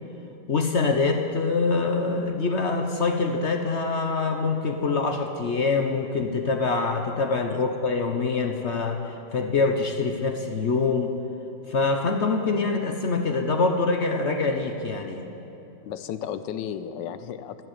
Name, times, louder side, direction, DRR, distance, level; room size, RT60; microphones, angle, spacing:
voice 1, 0.5-11.1 11.7-15.3, left 4 dB, 50° left, 4 dB, 0.9 m, -25 dB
voice 2, 15.8-17.7, left 9 dB, 85° left, 11 dB, 1.3 m, -34 dB
13.5 x 11.0 x 9.3 m, 2.9 s
omnidirectional pair, 1.9 m